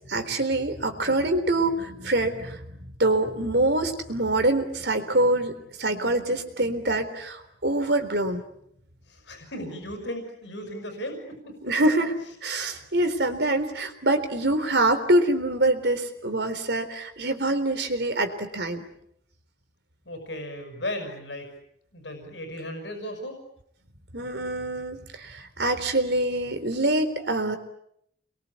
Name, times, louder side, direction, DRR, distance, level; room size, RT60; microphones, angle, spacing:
voice 1, 0.1-2.6 3.0-5.5 5.8-8.4 11.6-12.1 12.4-18.9 24.1-27.6, right 2 dB, 65° right, 7 dB, 3.8 m, -25 dB
voice 2, 9.1-11.6 20.0-21.5 21.9-23.4, left 1 dB, 85° left, 5 dB, 6.2 m, -36 dB
29.5 x 23.0 x 8.5 m, 0.74 s
head